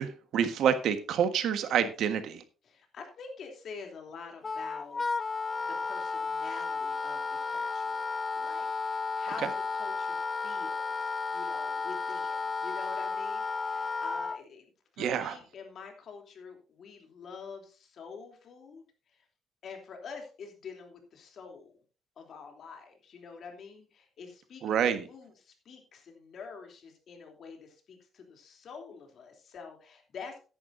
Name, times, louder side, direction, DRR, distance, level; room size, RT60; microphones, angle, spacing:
voice 1, 0.0-2.4 9.4-9.5 15.0-15.4 24.6-25.0, right 8 dB, 70° right, 9 dB, 1.5 m, -28 dB
voice 2, 2.6-5.0 5.6-8.0 8.4-19.3 19.6-21.8 22.2-24.8 25.1-30.4, left 5 dB, 55° left, 3 dB, 3.2 m, -47 dB
Wind instrument woodwind instrument, 4.4-14.4, left 4 dB, 25° left, 0.4 m, -33 dB
14.0 x 11.0 x 2.7 m, 0.35 s
cardioid pair, 120°, 0 cm